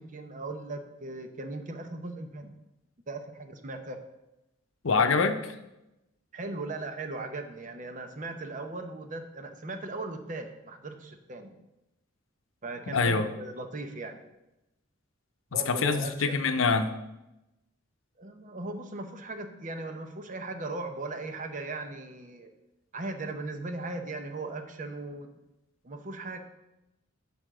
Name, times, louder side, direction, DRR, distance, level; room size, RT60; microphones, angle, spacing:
voice 1, 0.0-2.6 3.1-4.0 6.3-11.6 12.6-14.2 15.5-16.4 18.2-22.5 22.9-25.3 25.8-26.4, right 2 dB, 40° right, 6 dB, 0.8 m, -38 dB
voice 2, 4.8-5.5 12.9-13.2 15.7-16.9, left 4 dB, 80° left, 9 dB, 0.6 m, -25 dB
6.8 x 5.2 x 6.1 m, 0.94 s
head